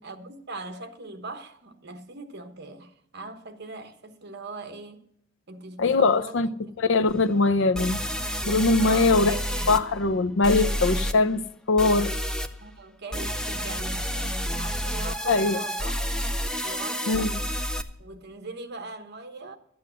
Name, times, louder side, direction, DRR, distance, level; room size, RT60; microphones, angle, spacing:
voice 1, 0.0-5.0 5.5-6.9 8.8-9.8 10.4-10.6 12.6-16.0 16.6-17.3 18.0-19.6, right 3 dB, 55° right, 1.2 m, -40 dB
voice 2, 5.8-6.5 6.8-8.0 8.5-9.3 9.7-11.4 11.7-12.1 15.3-15.6 17.1-17.3, left 3 dB, 60° left, 0.6 m, -21 dB
sound 1, 7.1-7.2 7.7-9.8 10.4-11.1 11.8-12.5 13.1-17.8, equal, 5° left, 0.6 m, -29 dB
12.5 x 8.6 x 6.3 m
head